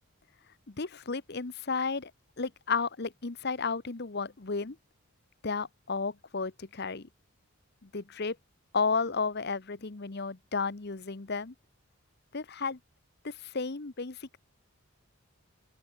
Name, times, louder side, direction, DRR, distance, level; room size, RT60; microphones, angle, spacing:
voice 1, 0.7-2.1 2.4-4.8 5.4-7.1 7.8-8.4 8.7-11.5 12.3-12.8 13.2-14.4, left 4 dB, 50° left, 1.0 m, -33 dB
open air
head